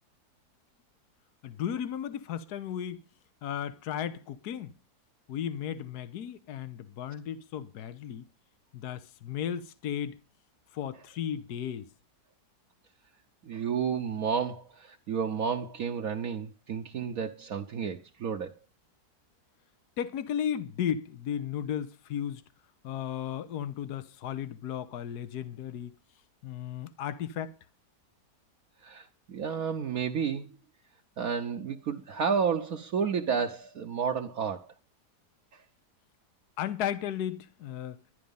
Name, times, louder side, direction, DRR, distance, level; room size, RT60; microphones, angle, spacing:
voice 1, 1.4-3.0 3.4-4.7 5.3-8.3 8.7-10.2 10.7-11.9 20.0-22.4 22.8-26.0 26.4-27.5 36.6-38.0, left 9 dB, 75° left, 1.4 m, -35 dB
voice 2, 13.4-18.5 28.8-30.5 31.2-34.7 35.5-35.6, right 6 dB, 65° right, 1.2 m, -31 dB
11.5 x 11.5 x 5.4 m
omnidirectional pair, 1.7 m